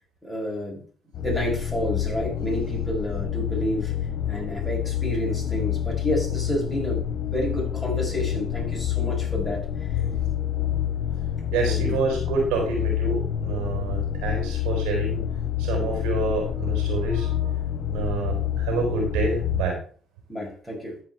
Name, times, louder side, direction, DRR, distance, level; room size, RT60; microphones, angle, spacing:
voice 1, 0.2-0.8 1.1-3.9 4.3-9.6 11.6-12.0 20.3-21.0, equal, 5° left, -3 dB, 5.5 m, -30 dB
sound 1, 1.1-19.6, left 10 dB, 65° left, 1.0 m, -28 dB
voice 2, 10.0-10.8 11.5-15.2 15.6-17.6 17.9-19.8, right 4 dB, 85° right, 1 dB, 4.5 m, -28 dB
13.5 x 5.1 x 4.4 m, 0.43 s
supercardioid pair, 65°, 0 cm